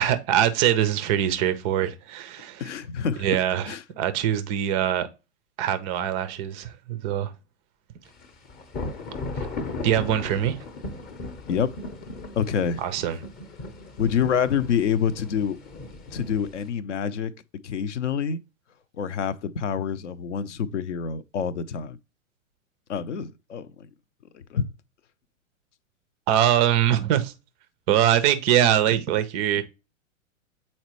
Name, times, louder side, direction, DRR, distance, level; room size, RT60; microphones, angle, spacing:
voice 1, 0.0-2.6 3.2-5.1 5.6-7.3 9.8-10.6 12.8-13.2 26.3-27.3 27.9-29.6, right 10 dB, 15° right, 0.4 m, -23 dB
voice 2, 2.6-3.3 3.7-3.8 11.5-11.8 12.4-12.8 14.0-15.6 16.1-17.3 17.6-18.4 19.0-22.0 22.9-23.9 24.3-24.7, left 7 dB, 60° left, 0.7 m, -27 dB
sound 1, 8.2-16.7, left 2 dB, 20° left, 0.8 m, -37 dB
7.9 x 4.3 x 3.0 m
figure-of-eight pair, 105°, 40 cm